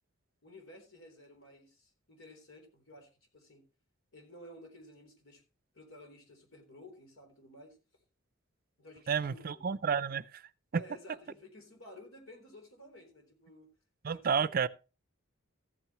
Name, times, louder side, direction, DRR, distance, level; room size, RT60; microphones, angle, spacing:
voice 1, 0.4-3.6 4.1-5.4 5.7-7.8 8.8-9.7 10.7-13.7 14.1-14.6, left 1 dB, 90° left, 3.7 m, -54 dB
voice 2, 9.1-10.4 10.7-10.8 14.0-14.7, right 6 dB, 45° right, 0.4 m, -30 dB
14.5 x 9.0 x 3.0 m
head